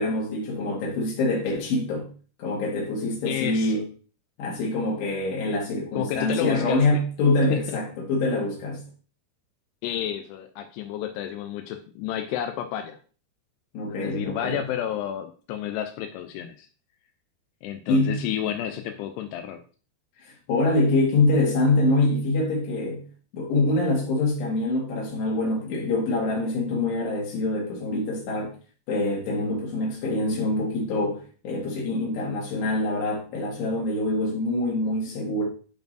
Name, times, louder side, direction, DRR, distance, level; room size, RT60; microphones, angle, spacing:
voice 1, 0.0-2.1 2.4-3.8 4.4-8.8 13.7-14.6 17.9-18.2 20.2-23.0 23.3-28.5 28.9-35.4, left 2 dB, 70° left, 3.8 m, -25 dB
voice 2, 3.2-3.8 6.0-7.0 7.5-7.8 9.8-13.0 13.9-16.7 17.6-19.6, left 10 dB, 90° left, 2.3 m, -31 dB
10.5 x 4.6 x 2.6 m
omnidirectional pair, 5.3 m